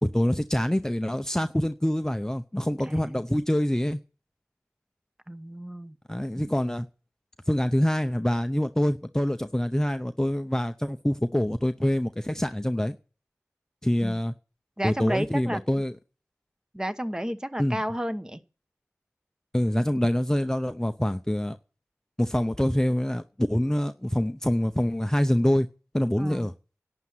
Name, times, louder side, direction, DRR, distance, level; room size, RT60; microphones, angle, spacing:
voice 1, 0.0-4.0 6.1-6.9 7.5-13.0 13.8-14.3 14.8-16.0 17.6-17.8 19.5-21.6 22.2-25.7 25.9-26.5, left 1 dB, 10° left, 8 dB, 0.7 m, -25 dB
voice 2, 2.9-3.2 5.3-5.9 6.3-6.4 14.8-15.6 16.7-18.4 26.2-26.5, equal, 10° right, 11 dB, 1.1 m, -32 dB
11.5 x 8.5 x 9.6 m, 0.36 s
wide cardioid pair, 65°, 6 cm